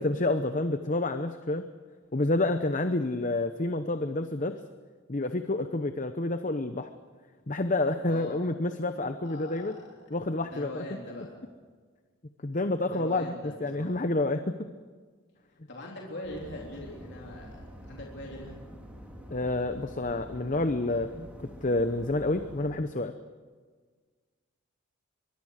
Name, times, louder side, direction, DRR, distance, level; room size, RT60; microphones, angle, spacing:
voice 1, 0.0-1.7 2.1-4.6 5.1-6.9 7.5-9.8 10.1-10.8 12.4-13.3 13.6-14.6 19.3-21.3 21.6-23.1, left 2 dB, 35° left, 9 dB, 0.8 m, -29 dB
voice 2, 9.2-10.1 10.5-11.5 12.9-14.0 15.7-18.6, left 1 dB, 50° left, -2 dB, 3.6 m, -42 dB
sound 1, 16.2-22.7, equal, 5° right, 2.8 m, -46 dB
23.5 x 23.0 x 6.5 m, 1.5 s
head